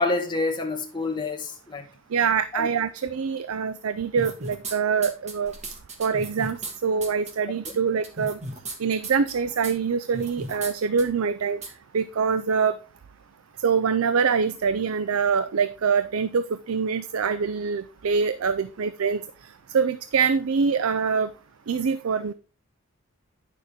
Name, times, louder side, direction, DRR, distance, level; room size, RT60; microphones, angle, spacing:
voice 1, 0.0-1.9 2.5-2.7, left 3 dB, 20° left, 1.5 m, -27 dB
voice 2, 2.1-5.5 6.0-8.4 8.8-11.6 11.9-12.8 13.6-19.2 19.7-21.3 21.7-22.3, right 6 dB, 80° right, 0.5 m, -24 dB
sound 1, 4.2-4.7 5.0-6.7 7.0-7.3 7.6-7.7 8.0-8.8 9.0-9.3 9.6-9.7 10.1-10.7 11.0-11.1 11.6-11.7, right 2 dB, 30° right, 1.5 m, -35 dB
9.5 x 6.6 x 3.5 m
head